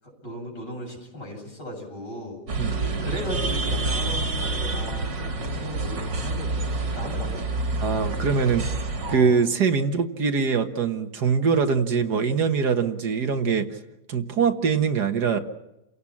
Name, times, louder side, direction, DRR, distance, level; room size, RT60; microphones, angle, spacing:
voice 1, 0.0-2.4 2.7-6.5 6.8-7.4 9.0-9.4, equal, 70° left, 0 dB, 8.4 m, -36 dB
sound 1, 2.5-9.2, right 3 dB, 85° right, 3.0 m, -28 dB
voice 2, 7.8-8.7 9.1-13.8 14.1-15.4, right 5 dB, 65° right, 7 dB, 1.9 m, -23 dB
30.0 x 17.0 x 7.3 m, 0.93 s
omnidirectional pair, 1.9 m